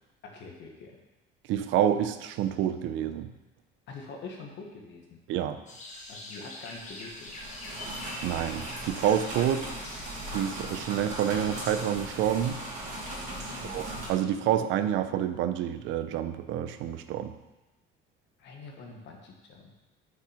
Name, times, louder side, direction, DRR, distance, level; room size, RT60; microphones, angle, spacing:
voice 1, 0.2-1.0 3.9-5.2 6.1-7.8 9.6-9.8 13.5-13.9 18.4-19.7, left 4 dB, 60° left, 1 dB, 1.4 m, -45 dB
voice 2, 1.5-3.3 5.3-5.6 8.2-9.6 10.3-12.6 13.6-17.3, right 10 dB, 70° right, 10 dB, 0.6 m, -28 dB
sound 1, 5.7-11.9, left 1 dB, 35° left, 1.4 m, -44 dB
sound 2, 6.8-14.1, right 1 dB, 35° right, 2.3 m, -38 dB
5.9 x 5.8 x 5.0 m, 1.0 s
cardioid pair, 140°, 21 cm